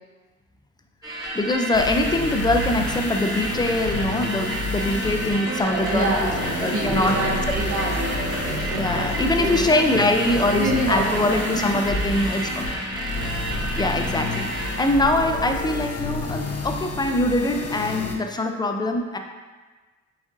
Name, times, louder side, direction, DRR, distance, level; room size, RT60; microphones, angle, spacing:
sound 1, 1.0-14.9, right 1 dB, 10° right, 1.2 m, -31 dB
voice 1, 1.1-6.3 6.6-7.2 7.5-7.6 8.8-12.7 13.8-19.2, left 2 dB, 15° left, 5 dB, 0.4 m, -23 dB
sound 2, 1.7-18.2, left 2 dB, 55° left, 0.6 m, -30 dB
sound 3, 5.5-11.9, right 4 dB, 90° right, 0.7 m, -34 dB
voice 2, 5.7-8.0 8.4-9.6 10.2-11.1, right 1 dB, 50° right, -3 dB, 1.0 m, -27 dB
7.1 x 2.5 x 2.5 m, 1.3 s
cardioid pair, 90°, 30 cm